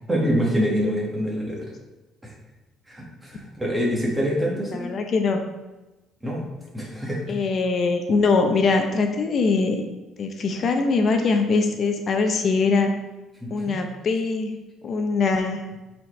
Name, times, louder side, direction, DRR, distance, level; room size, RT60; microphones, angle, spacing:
voice 1, 0.1-1.6 2.2-2.3 2.9-4.9 6.2-6.4 6.7-7.3 13.4-13.7, equal, 10° right, -3 dB, 1.7 m, -25 dB
voice 2, 4.7-5.4 7.3-9.8 10.2-12.9 13.5-14.5 14.8-15.6, left 4 dB, 40° left, 5 dB, 0.7 m, -22 dB
8.2 x 4.4 x 3.2 m, 1.1 s
cardioid pair, 145°, 0 cm